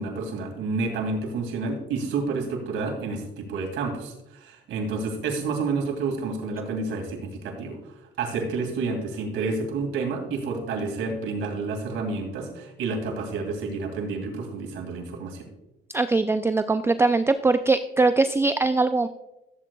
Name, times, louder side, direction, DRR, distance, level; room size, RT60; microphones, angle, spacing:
voice 1, 0.0-15.5, right 4 dB, 85° right, 2 dB, 2.3 m, -30 dB
voice 2, 15.9-19.1, right 3 dB, 10° right, 10 dB, 0.4 m, -21 dB
14.5 x 8.1 x 2.3 m, 0.94 s
cardioid pair, 90°, 20 cm